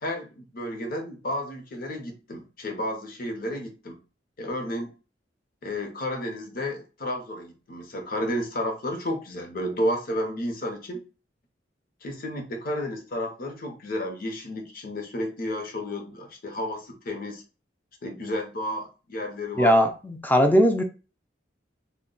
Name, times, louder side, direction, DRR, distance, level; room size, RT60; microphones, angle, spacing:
voice 1, 0.0-4.0 4.4-4.9 5.6-11.0 12.0-17.4 18.0-19.8, left 1 dB, 55° left, 0.7 m, -32 dB
voice 2, 19.6-20.8, equal, 10° left, 0.4 m, -19 dB
2.2 x 2.1 x 3.7 m
head